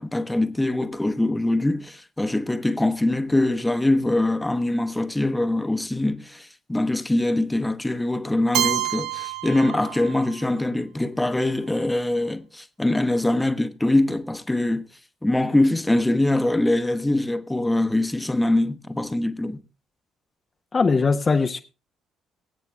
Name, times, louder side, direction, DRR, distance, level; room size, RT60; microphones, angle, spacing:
voice 1, 0.0-14.8 15.2-19.6, left 1 dB, 10° left, 0.9 m, -23 dB
Keyboard (musical), 8.5-10.5, right 13 dB, 70° right, 0.6 m, -28 dB
voice 2, 20.7-21.6, left 4 dB, 35° left, 0.7 m, -20 dB
23.5 x 8.2 x 2.3 m
hypercardioid pair, 45°, 0 cm